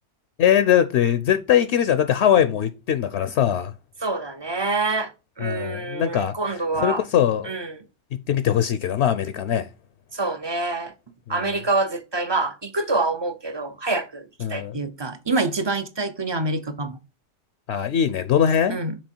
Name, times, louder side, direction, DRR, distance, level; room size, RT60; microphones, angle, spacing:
voice 1, 0.4-3.7 5.4-7.6 8.3-9.7 11.3-11.4 14.4-14.8 17.7-18.8, left 9 dB, 75° left, 0.9 m, -21 dB
voice 2, 4.0-5.1 5.4-7.0 7.4-7.8 10.1-10.9 11.3-17.0 18.7-19.0, right 3 dB, 35° right, 0.5 m, -26 dB
6.2 x 4.3 x 4.4 m
omnidirectional pair, 1.2 m